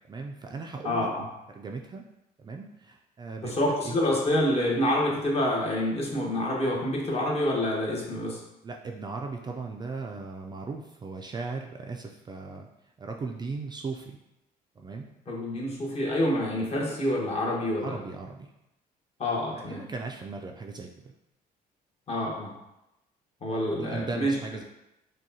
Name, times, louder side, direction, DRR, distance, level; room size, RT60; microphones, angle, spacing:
voice 1, 0.1-1.1 1.5-2.0 2.4-3.5 3.8-4.0 8.6-12.7 13.0-14.2 14.8-15.1 17.8-18.5 19.5-21.1 23.7-24.6, right 4 dB, 25° right, 2 dB, 0.4 m, -37 dB
voice 2, 0.8-1.3 3.4-8.4 15.3-18.0 19.2-19.8 22.1-22.5 23.4-24.4, left 1 dB, 35° left, -3 dB, 1.2 m, -27 dB
6.1 x 2.3 x 2.8 m, 0.90 s
cardioid pair, 110°, 17 cm